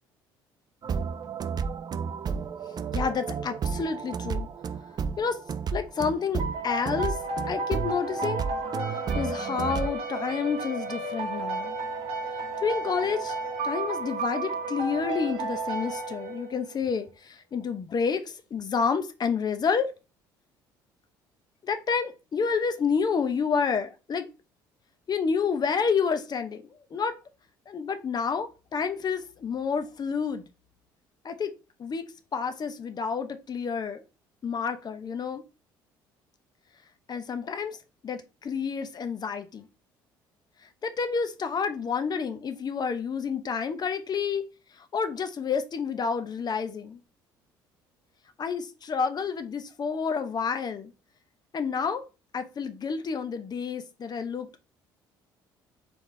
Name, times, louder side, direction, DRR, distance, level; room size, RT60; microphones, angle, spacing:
sound 1, 0.8-9.9, right 6 dB, 40° right, 0.4 m, -32 dB
voice 1, 2.7-4.5 5.2-5.4 5.7-7.2 7.5-8.4 8.9-11.8 12.6-13.4 13.6-19.9 21.6-24.3 25.1-26.6 26.9-27.2 27.7-30.5 31.2-31.5 31.8-34.0 34.4-35.4 37.1-37.8 38.0-39.7 40.6-44.5 44.7-47.0 48.4-50.9 51.5-52.0 52.3-54.5, left 6 dB, 40° left, 0.8 m, -29 dB
sound 2, 6.4-16.8, right 2 dB, 70° right, 1.2 m, -33 dB
4.0 x 3.5 x 3.3 m
hypercardioid pair, 60°, 11 cm